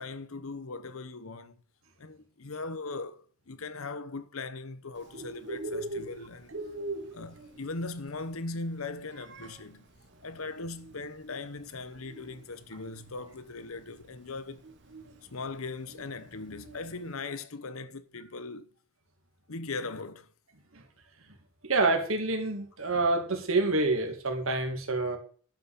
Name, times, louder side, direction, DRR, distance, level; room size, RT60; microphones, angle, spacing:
voice 1, 0.0-1.6 2.0-6.6 7.1-9.9 10.2-14.6 15.3-18.7 19.5-20.3, left 3 dB, 80° left, 1.0 m, -39 dB
Bird, 5.0-17.1, right 2 dB, 55° right, 1.7 m, -43 dB
voice 2, 21.6-25.2, right 3 dB, 70° right, 2.3 m, -27 dB
12.0 x 5.3 x 7.1 m
head